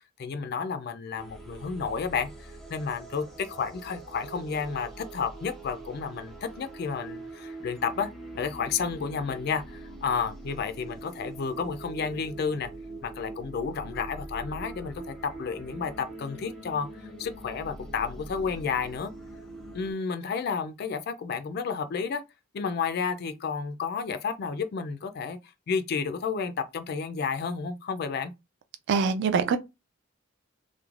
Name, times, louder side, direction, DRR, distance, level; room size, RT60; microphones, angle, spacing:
voice 1, 0.2-8.1 8.3-12.7 13.0-16.9 17.2-19.1 19.7-22.2 22.5-25.4 25.7-28.3, left 5 dB, 50° left, 0.3 m, -31 dB
sound 1, 1.2-19.9, right 2 dB, ahead, 0.5 m, -43 dB
voice 2, 28.9-29.6, right 5 dB, 55° right, 0.3 m, -23 dB
3.1 x 2.0 x 2.4 m
head